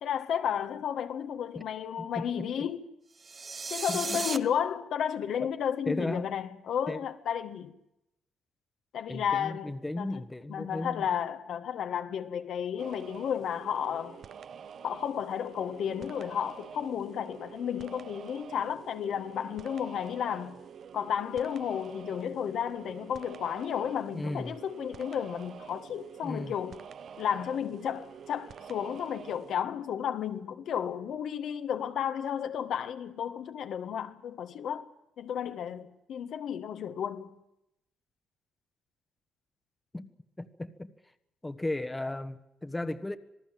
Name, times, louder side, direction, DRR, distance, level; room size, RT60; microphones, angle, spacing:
voice 1, 0.0-2.8 3.7-7.7 8.9-10.2 10.5-14.2 14.8-20.6 20.9-26.8 27.2-37.3, left 8 dB, 70° left, 1.5 m, -33 dB
voice 2, 2.2-2.7 3.9-4.3 5.4-5.5 5.9-6.3 6.9-7.0 9.1-11.0 24.1-24.6 26.2-26.5 39.9-40.1 40.4-40.9 41.4-43.2, left 2 dB, 15° left, 1.3 m, -35 dB
sound 1, 3.2-4.4, right 4 dB, 35° right, 1.1 m, -35 dB
sound 2, 12.8-29.6, right 7 dB, 60° right, 0.8 m, -47 dB
27.0 x 18.5 x 7.6 m
cardioid pair, 90°, 0 cm